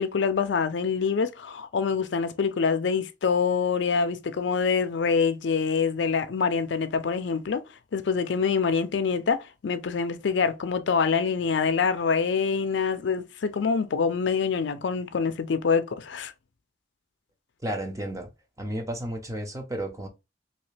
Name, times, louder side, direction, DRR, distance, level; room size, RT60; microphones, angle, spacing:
voice 1, 0.0-7.6 7.9-16.3, left 5 dB, 75° left, 0.5 m, -25 dB
voice 2, 17.6-18.3 18.6-20.1, right 1 dB, 20° right, 0.7 m, -32 dB
3.2 x 2.8 x 3.2 m
head